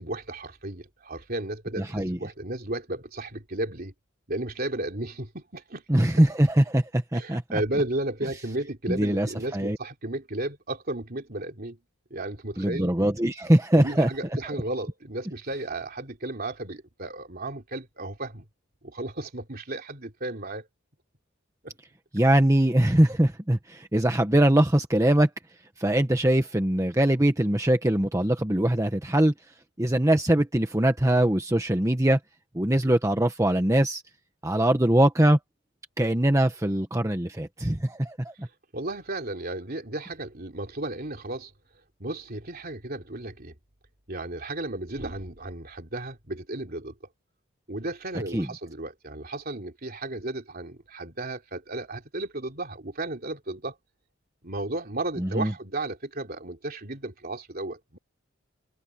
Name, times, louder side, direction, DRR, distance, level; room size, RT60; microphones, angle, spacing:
voice 1, 0.0-3.9 4.3-5.8 7.1-11.8 12.1-12.9 13.7-18.4 18.8-20.7 21.6-21.7 38.7-41.5 42.0-43.5 44.1-46.9 47.7-53.7 54.4-58.0, right 2 dB, 45° right, 3.3 m, -34 dB
voice 2, 1.8-2.2 5.9-7.6 8.9-9.8 12.6-14.1 22.1-25.3 25.8-32.2 32.5-34.0 34.4-35.4 36.0-38.5 48.3-48.5 55.2-55.5, right 1 dB, 15° right, 1.2 m, -22 dB
head